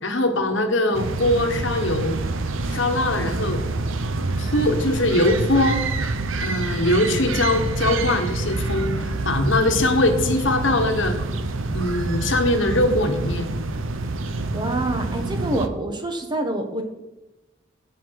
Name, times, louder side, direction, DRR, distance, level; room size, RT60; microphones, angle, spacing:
voice 1, 0.0-2.1 2.7-3.6 4.4-5.8 6.4-11.2 11.7-13.4, left 1 dB, 65° left, 6 dB, 1.3 m, -21 dB
sound 1, 0.9-15.7, right 2 dB, 80° right, 0.8 m, -27 dB
voice 2, 14.5-16.8, right 1 dB, 20° right, 5 dB, 1.1 m, -26 dB
15.5 x 5.7 x 4.7 m, 0.98 s
head